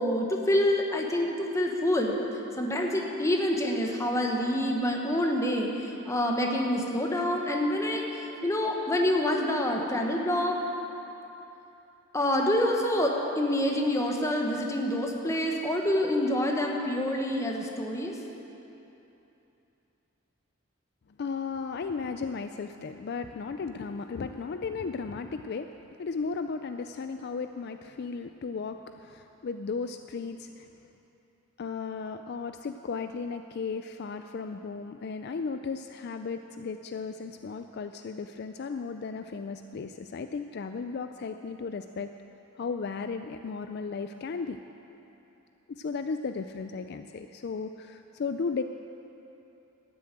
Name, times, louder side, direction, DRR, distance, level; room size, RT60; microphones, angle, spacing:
voice 1, 0.0-2.2 2.6-10.6 12.1-18.1, left 1 dB, 15° left, 1 dB, 1.1 m, -27 dB
voice 2, 21.2-25.7 26.0-30.7 31.6-42.1 42.6-44.6 45.7-48.6, left 5 dB, 50° left, 8 dB, 0.4 m, -35 dB
12.5 x 7.0 x 9.0 m, 3.0 s
head